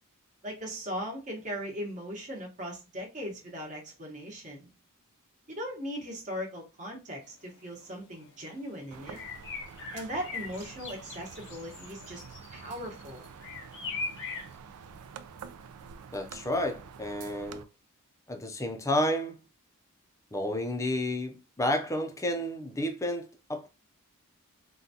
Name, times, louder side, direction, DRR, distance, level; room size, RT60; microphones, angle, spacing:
voice 1, 0.4-4.7 5.5-9.2 9.9-12.2 12.5-13.2, equal, 35° right, 1.0 m, -38 dB
sound 1, 7.3-7.4 7.8-7.9 8.1-8.5 9.1-14.5, left 4 dB, 55° left, 0.7 m, -41 dB
sound 2, 8.9-17.6, right 6 dB, 80° right, 0.4 m, -47 dB
voice 2, 16.1-17.7 18.3-19.4 20.3-23.7, left 1 dB, 15° left, 0.5 m, -31 dB
3.8 x 2.2 x 2.7 m
head